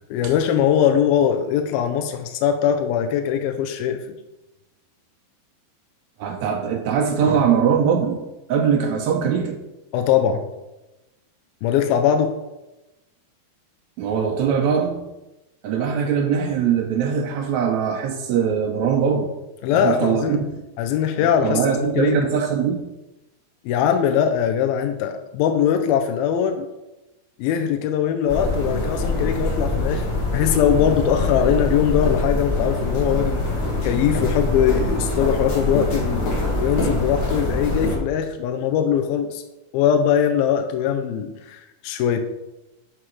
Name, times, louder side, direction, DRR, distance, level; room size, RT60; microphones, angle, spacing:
voice 1, 0.1-4.2 9.9-10.4 11.6-12.4 19.6-20.4 20.8-21.6 22.0-22.2 23.7-26.7 27.4-30.1 30.3-33.4 33.8-39.4 39.7-42.2, left 9 dB, 80° left, 7 dB, 2.4 m, -21 dB
voice 2, 6.2-8.2 8.5-9.6 14.0-15.0 15.6-19.3 19.7-20.6 21.2-22.8, right 7 dB, 85° right, 2 dB, 1.6 m, -21 dB
sound 1, 28.3-38.0, left 2 dB, 50° left, 3.9 m, -24 dB
9.7 x 4.9 x 6.1 m, 0.98 s
omnidirectional pair, 4.3 m